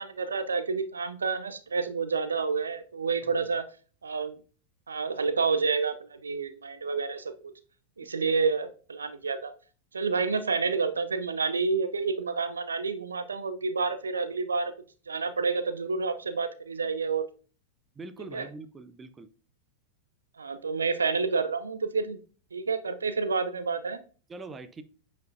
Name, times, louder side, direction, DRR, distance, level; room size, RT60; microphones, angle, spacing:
voice 1, 0.0-3.6 4.0-4.4 4.9-7.5 8.0-9.5 9.9-14.7 15.1-17.3 18.3-18.5 20.4-22.2 22.5-24.0, right 4 dB, 75° right, 0.5 m, -29 dB
voice 2, 17.9-19.3 24.3-24.8, right 3 dB, 15° right, 0.6 m, -43 dB
9.0 x 5.3 x 2.6 m
figure-of-eight pair, 90°, 0 cm